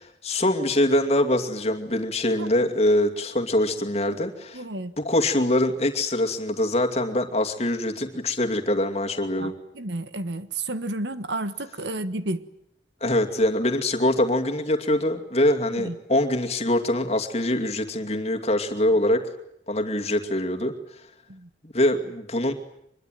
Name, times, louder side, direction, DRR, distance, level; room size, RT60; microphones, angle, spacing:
voice 1, 0.0-4.6 5.0-9.5 13.0-19.2 19.7-20.7 21.6-22.5, left 1 dB, 35° left, 2.5 m, -24 dB
voice 2, 4.5-4.9 9.4-12.4 15.8-15.9 21.3-21.5, right 2 dB, 75° right, 1.5 m, -31 dB
24.5 x 22.0 x 9.2 m
head